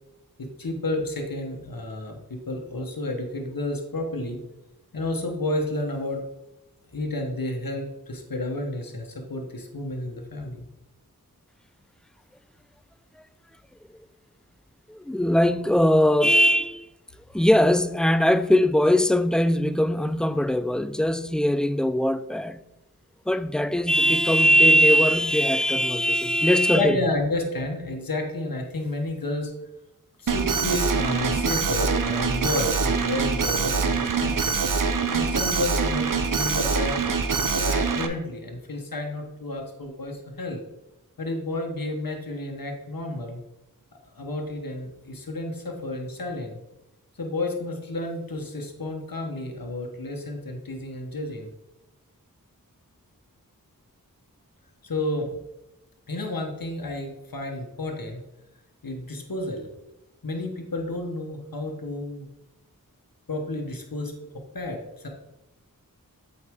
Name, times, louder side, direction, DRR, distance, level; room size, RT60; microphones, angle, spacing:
voice 1, 0.4-4.4 4.9-6.3 6.9-10.6 26.7-29.5 30.2-34.6 35.1-37.0 37.3-40.6 41.2-43.4 44.2-46.6 47.2-51.5 54.8-55.4 56.1-58.2 58.8-59.7 60.2-62.3 63.3-65.1, left 2 dB, 80° left, 1.1 m, -31 dB
voice 2, 14.9-16.9 17.3-22.6 23.3-27.0, equal, ahead, 0.3 m, -20 dB
Alarm, 30.3-38.1, right 5 dB, 65° right, 0.6 m, -24 dB
7.8 x 4.9 x 3.5 m
wide cardioid pair, 40°, 34 cm